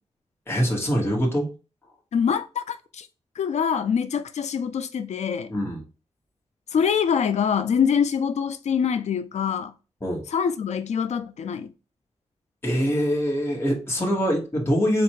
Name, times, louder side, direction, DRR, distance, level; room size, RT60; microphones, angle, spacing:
voice 1, 0.5-1.5 5.5-5.8 10.0-10.2 12.6-15.0, equal, 20° left, 1.3 m, -23 dB
voice 2, 2.1-3.1 3.4-5.5 6.7-9.7 10.3-11.7, left 7 dB, 90° left, 0.4 m, -24 dB
4.2 x 2.5 x 4.6 m
wide cardioid pair, 125°, 11 cm